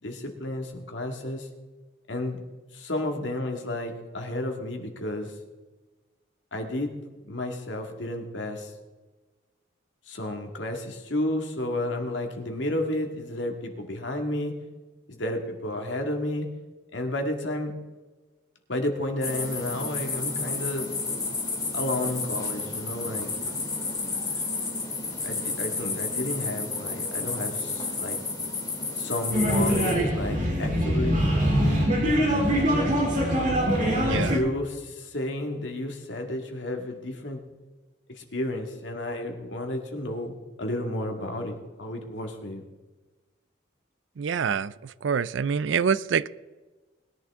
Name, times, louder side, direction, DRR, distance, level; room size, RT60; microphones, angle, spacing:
voice 1, 0.0-1.5 2.1-2.4 2.7-5.3 6.5-8.7 10.1-14.5 15.1-16.5 16.9-17.7 18.7-20.9 21.7-23.3 25.2-28.2 29.0-31.3 32.0-32.9 33.7-37.4 38.1-40.3 40.6-42.6, left 1 dB, 70° left, 3 dB, 2.1 m, -32 dB
sound 1, 19.2-29.9, left 3 dB, 20° left, 2.6 m, -31 dB
sound 2, 29.3-34.4, equal, 40° right, 4.0 m, -23 dB
voice 2, 34.0-34.4 44.2-46.3, right 6 dB, 75° right, 17 dB, 0.4 m, -26 dB
20.5 x 10.5 x 3.7 m, 1.3 s
head